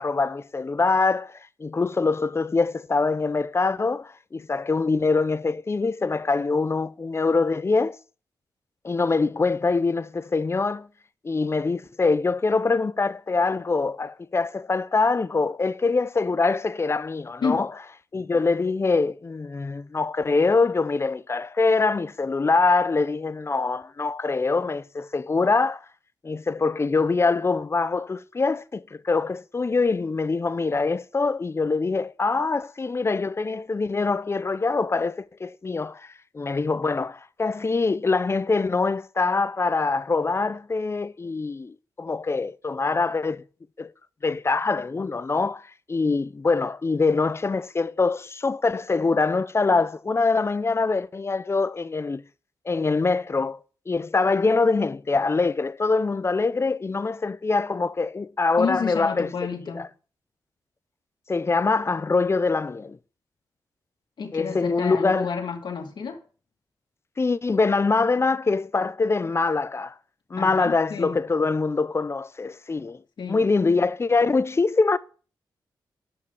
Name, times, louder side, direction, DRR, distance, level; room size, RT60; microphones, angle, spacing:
voice 1, 0.0-8.0 8.8-10.9 11.2-17.7 18.1-25.8 26.2-36.1 36.3-43.4 43.8-43.9 44.2-45.6 45.9-52.2 52.7-53.6 53.9-59.3 59.8-59.9 61.3-63.0 64.3-65.3 67.2-69.9 70.3-73.0 73.3-75.0, left 4 dB, 30° left, 0.6 m, -24 dB
voice 2, 58.6-59.9 64.2-66.2 70.4-71.2 73.2-73.4, left 5 dB, 65° left, 2.1 m, -30 dB
9.1 x 5.7 x 6.2 m
cardioid pair, 65°, 8 cm